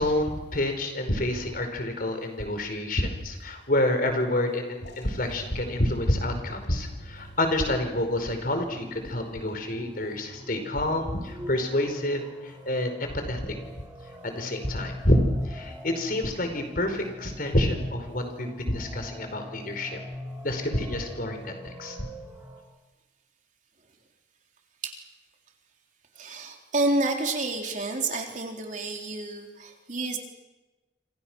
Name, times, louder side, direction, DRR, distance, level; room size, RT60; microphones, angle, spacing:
voice 1, 0.0-13.5 14.2-20.0 20.4-22.0, left 1 dB, 55° left, 6 dB, 4.9 m, -28 dB
sound 1, 4.8-11.5, equal, 80° left, 6.2 m, -49 dB
sound 2, 7.9-22.6, equal, 10° right, 4.5 m, -44 dB
voice 2, 26.2-30.2, right 2 dB, 45° right, 2 dB, 3.7 m, -29 dB
27.5 x 27.0 x 6.3 m, 1.1 s
head